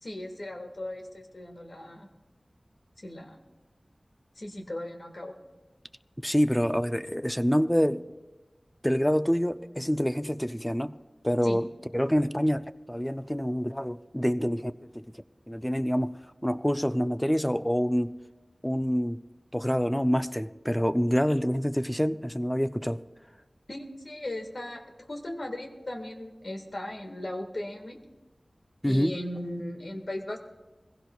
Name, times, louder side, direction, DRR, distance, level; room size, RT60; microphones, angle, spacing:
voice 1, 0.0-2.1 3.0-3.4 4.4-5.3 11.4-11.6 23.7-24.8 25.1-28.0 28.8-30.4, left 1 dB, 65° left, 3 dB, 1.7 m, -37 dB
voice 2, 6.2-8.0 8.8-11.0 11.2-11.7 11.9-15.0 15.5-16.1 16.4-18.1 18.6-19.2 19.5-23.0 28.8-29.1, equal, 5° left, 11 dB, 0.5 m, -26 dB
21.0 x 16.0 x 2.3 m, 1.1 s
wide cardioid pair, 40°, 0 cm